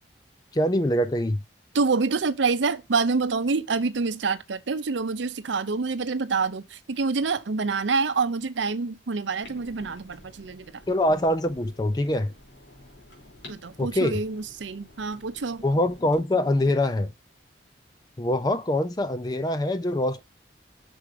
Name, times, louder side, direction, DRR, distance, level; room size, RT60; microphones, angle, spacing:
voice 1, 0.5-1.4 10.9-12.3 13.8-14.2 15.6-17.1 18.2-20.2, left 1 dB, 20° left, 0.4 m, -24 dB
voice 2, 1.7-10.7 13.5-15.6, right 4 dB, 85° right, 0.6 m, -27 dB
Clock, 9.4-16.2, left 1 dB, 75° left, 3.5 m, -50 dB
6.2 x 4.7 x 4.9 m
head